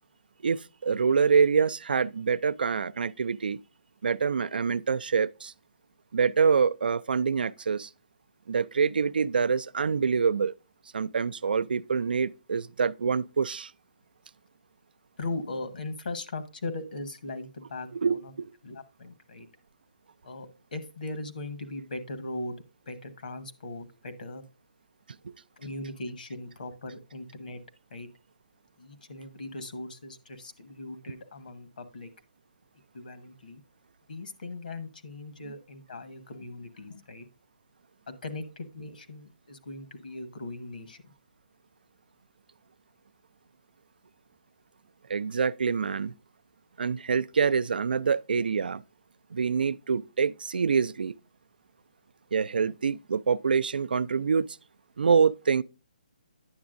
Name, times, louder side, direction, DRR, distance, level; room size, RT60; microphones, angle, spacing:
voice 1, 0.4-3.6 4.0-5.5 6.1-7.9 8.5-10.5 10.9-13.7 17.9-18.5 25.2-25.3 45.1-46.1 46.8-48.8 49.3-51.1 52.3-54.5 55.0-55.6, right 6 dB, 85° right, 0.3 m, -26 dB
voice 2, 15.2-18.3 18.6-19.5 20.2-22.6 22.9-24.4 25.6-27.6 27.9-28.1 28.8-32.1 32.9-33.6 34.1-37.3 38.1-41.1, left 2 dB, 70° left, 1.2 m, -39 dB
9.5 x 7.0 x 2.5 m
hypercardioid pair, 165°, 5 cm